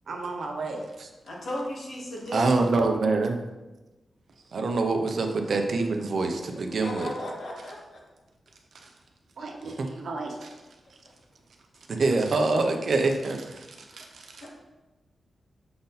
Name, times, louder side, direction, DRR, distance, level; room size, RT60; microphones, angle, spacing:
voice 1, 0.1-0.8 9.4-10.5 13.9-14.4, right 3 dB, 70° right, 1 dB, 1.0 m, -36 dB
voice 2, 1.2-2.6 6.7-8.0 14.4-14.5, left 1 dB, 75° left, -3 dB, 1.8 m, -35 dB
voice 3, 2.3-3.4 4.5-7.1 9.6-9.9 11.9-13.6, right 3 dB, 55° right, 4 dB, 0.6 m, -25 dB
6.7 x 4.0 x 4.0 m, 1.1 s
wide cardioid pair, 160°, 0 cm